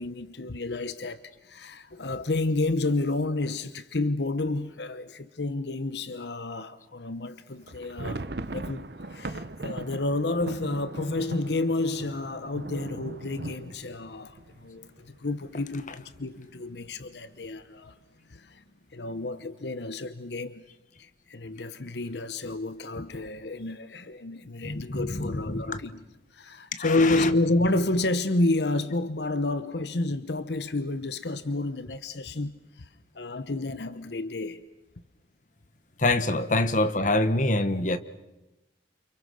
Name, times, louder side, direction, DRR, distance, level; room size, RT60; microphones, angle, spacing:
voice 1, 0.0-18.0 18.3-18.6 18.9-20.7 21.0-26.0 26.3-32.9 33.1-34.6, left 2 dB, 70° left, 1.0 m, -30 dB
sound 1, 7.6-15.4 15.7-15.8 16.0-16.3 16.8-17.3, right 2 dB, 65° right, 1.0 m, -39 dB
voice 2, 24.6-25.6 26.7-27.3 36.0-38.0, left 2 dB, 45° left, 1.4 m, -25 dB
29.5 x 27.5 x 6.5 m
head